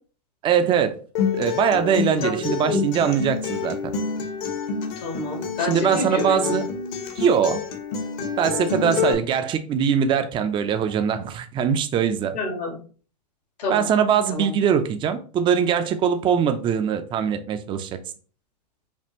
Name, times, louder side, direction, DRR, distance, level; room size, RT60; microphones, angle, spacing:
voice 1, 0.4-1.0 1.3-3.9 5.7-6.7 7.2-7.6 8.4-12.3 13.7-17.9, right 7 dB, 25° right, 0.5 m, -22 dB
Acoustic guitar, 1.1-9.1, left 6 dB, 50° left, 1.0 m, -28 dB
voice 2, 2.2-2.8 5.0-6.6 8.8-9.2 12.3-12.8 13.6-13.9 14.3-14.5, left 2 dB, 75° left, 1.7 m, -28 dB
5.3 x 2.4 x 2.8 m
hypercardioid pair, 110°, 21 cm